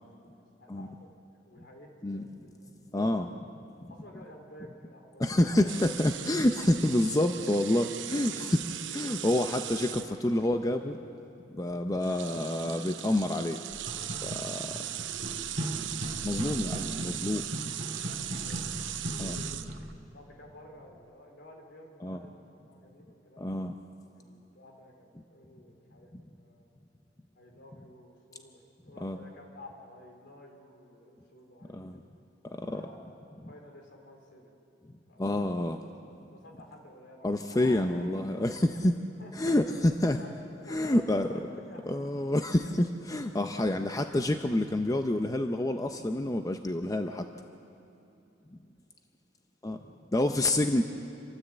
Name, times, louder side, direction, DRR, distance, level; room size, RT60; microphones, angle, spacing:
voice 1, 0.6-2.5 3.9-5.8 6.7-6.8 14.4-15.1 16.3-16.7 18.4-19.8 20.1-23.6 24.1-26.7 27.4-32.1 32.5-33.2 33.5-34.5 35.0-35.6 36.3-38.6 39.2-39.5 40.1-40.4 40.7-42.1 49.8-50.1, left 1 dB, 65° left, 1 dB, 3.7 m, -52 dB
voice 2, 2.9-3.4 5.2-11.0 11.6-13.6 14.2-14.6 16.2-17.4 19.2-19.4 22.0-22.2 23.4-23.7 26.1-26.2 29.0-29.2 31.7-32.0 32.7-32.8 35.2-35.8 37.2-38.9 39.4-40.2 40.7-41.3 41.9-47.3 49.6-49.8 50.1-50.8, left 1 dB, 20° left, 6 dB, 0.6 m, -28 dB
sound 1, 5.7-10.5 11.6-11.8 12.0-19.9, right 11 dB, 90° right, 0.8 m, -38 dB
sound 2, 13.7-20.0, equal, 35° right, 2.3 m, -38 dB
27.0 x 13.5 x 7.9 m, 2.7 s
head